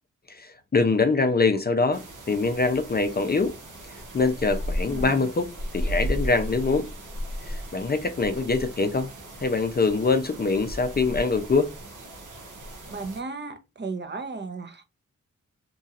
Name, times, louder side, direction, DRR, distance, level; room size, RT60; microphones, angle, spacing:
voice 1, 0.3-3.5 4.1-6.9 7.4-9.1 9.4-11.7, left 4 dB, 30° left, 0.5 m, -24 dB
sound 1, 1.9-13.2, equal, 80° right, 0.9 m, -35 dB
voice 2, 4.7-5.3 12.9-14.8, right 4 dB, 35° right, 0.7 m, -35 dB
3.0 x 2.7 x 2.4 m
cardioid pair, 45°, 31 cm